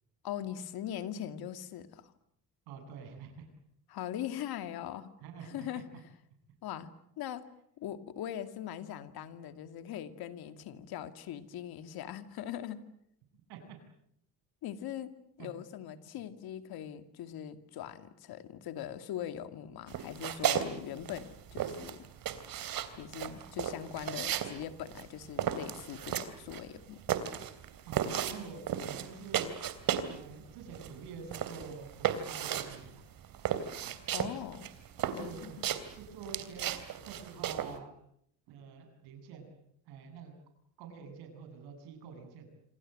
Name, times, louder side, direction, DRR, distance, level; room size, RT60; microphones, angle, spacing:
voice 1, 0.2-2.1 3.9-5.1 5.4-5.9 6.6-7.4 7.8-12.8 14.6-15.1 15.4-22.1 23.0-27.0 34.1-34.7 35.1-35.7, left 10 dB, 75° left, 9 dB, 2.4 m, -41 dB
voice 2, 2.7-3.5 5.2-5.8 13.5-13.8 15.4-15.6 27.9-29.5 30.1-33.1 33.8-33.9 35.0-35.7 36.0-36.7 37.1-37.9 38.5-39.5 39.9-40.3 40.8-42.5, right 6 dB, 90° right, 7 dB, 7.4 m, -47 dB
sound 1, 19.9-20.7 21.0-30.2 30.5-37.8, right 10 dB, 65° right, 3.1 m, -34 dB
27.0 x 27.0 x 7.8 m, 0.72 s
cardioid pair, 95°, 38 cm